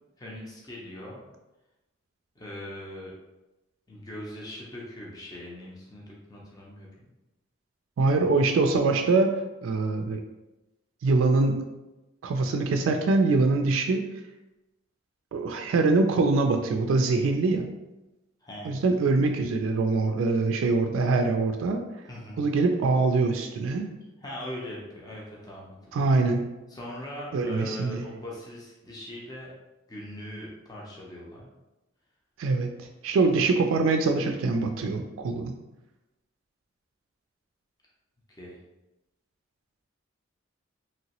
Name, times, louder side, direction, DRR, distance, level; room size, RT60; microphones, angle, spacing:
voice 1, 0.2-1.3 2.4-3.1 3.9-7.1 18.4-18.9 22.1-22.5 24.2-26.0 26.7-29.5 29.9-31.5 38.3-38.6, left 1 dB, 20° left, -4 dB, 0.5 m, -40 dB
voice 2, 8.0-9.3 9.6-10.2 11.0-11.6 12.2-14.1 15.3-17.7 18.6-21.8 22.4-23.9 25.9-26.5 27.3-28.0 32.4-35.5, right 3 dB, 90° right, 4 dB, 0.3 m, -24 dB
3.0 x 2.8 x 2.9 m, 1.0 s
head